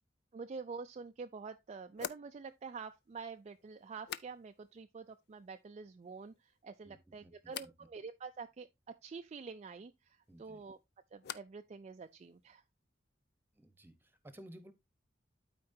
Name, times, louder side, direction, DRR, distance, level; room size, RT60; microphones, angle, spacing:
voice 1, 0.3-10.8 11.1-12.6, right 5 dB, 35° right, 0.3 m, -47 dB
sound 1, 0.7-0.8 1.9-4.8 5.1-5.7 6.0-6.6 7.5-7.8 10.2-11.7 12.0-12.6, left 9 dB, 60° left, 0.4 m, -49 dB
voice 2, 6.8-7.7 10.3-10.6 13.5-14.7, right 1 dB, 10° right, 0.9 m, -56 dB
12.5 x 4.4 x 2.7 m
head